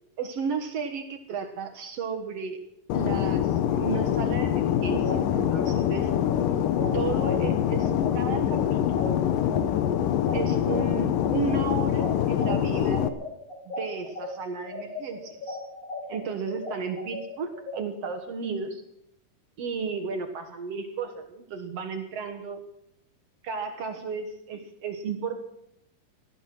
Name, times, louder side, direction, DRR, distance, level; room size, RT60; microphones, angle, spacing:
voice 1, 0.2-2.6 2.9-6.1 6.9-9.2 10.3-13.0 13.7-15.6 16.1-18.8 19.6-22.6 23.4-25.4, right 5 dB, 55° right, 6 dB, 2.0 m, -33 dB
Fixed-wing aircraft airplane, 2.9-13.1, left 10 dB, 75° left, 2.4 m, -25 dB
sound 1, 4.9-14.3 14.7-17.8, left 2 dB, 45° left, 4.7 m, -37 dB
18.0 x 13.0 x 6.1 m, 0.79 s
omnidirectional pair, 4.0 m